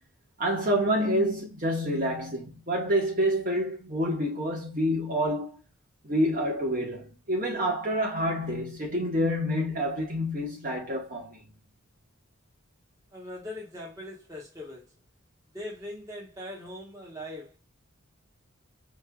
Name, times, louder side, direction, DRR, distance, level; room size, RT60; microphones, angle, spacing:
voice 1, 0.4-5.6 6.0-11.4, equal, 40° right, 1.2 m, -28 dB
voice 2, 13.1-14.9 15.5-17.6, left 1 dB, 15° right, 1.1 m, -40 dB
5.3 x 2.6 x 2.3 m
head